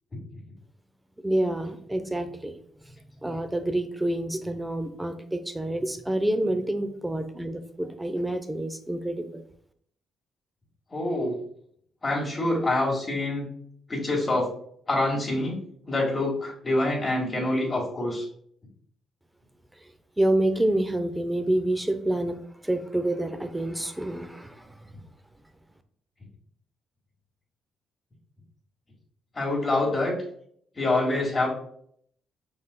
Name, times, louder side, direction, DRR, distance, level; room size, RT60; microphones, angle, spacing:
voice 1, 1.2-2.5 2.8-2.9 3.2-9.4 20.2-24.7, right 1 dB, 10° right, 9 dB, 0.5 m, -28 dB
voice 2, 10.9-11.4 12.0-13.5 13.9-14.5 14.9-15.6 15.9-18.3 29.3-30.1 30.8-31.5, left 2 dB, 25° left, -3 dB, 1.8 m, -26 dB
5.4 x 3.9 x 2.2 m, 0.65 s
cardioid pair, 90°, 0 cm